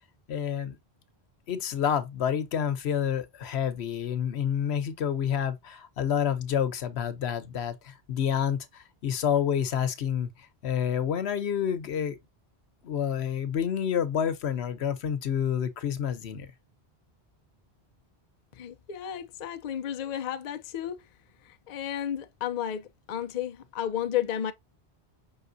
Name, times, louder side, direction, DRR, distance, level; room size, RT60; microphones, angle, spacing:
voice 1, 0.3-0.8 1.5-10.3 10.6-12.2 12.8-16.5, left 8 dB, 85° left, 1.1 m, -28 dB
voice 2, 18.5-21.1 21.4-24.5, left 10 dB, 50° left, 0.6 m, -33 dB
5.5 x 3.7 x 2.6 m
omnidirectional pair, 1.1 m